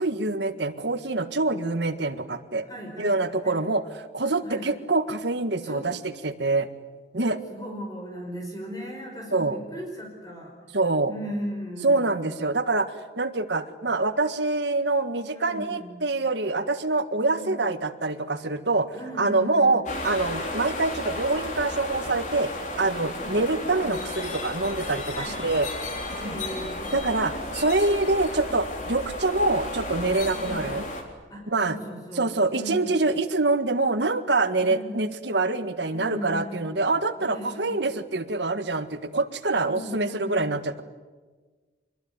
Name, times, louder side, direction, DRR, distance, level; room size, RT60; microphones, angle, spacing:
voice 1, 0.0-2.6 3.0-3.8 4.1-6.7 7.1-7.4 9.3-9.6 10.7-11.1 11.8-18.9 19.2-22.5 22.8-25.7 26.2-26.3 26.9-30.8 31.5-31.8 32.2-40.8, right 2 dB, 70° right, 9 dB, 1.7 m, -25 dB
voice 2, 2.7-3.6 4.4-4.7 5.6-5.9 7.5-10.5 11.1-12.2 15.3-16.0 17.2-17.5 18.9-19.8 23.2-23.4 25.1-25.4 26.2-27.0 30.3-30.8 31.3-33.0 34.6-35.0 35.9-36.7 37.2-37.8 39.6-40.4, equal, 20° left, 1 dB, 5.1 m, -37 dB
sound 1, 19.9-31.0, left 2 dB, 40° left, 3.7 m, -33 dB
26.0 x 21.5 x 9.6 m, 1.3 s
head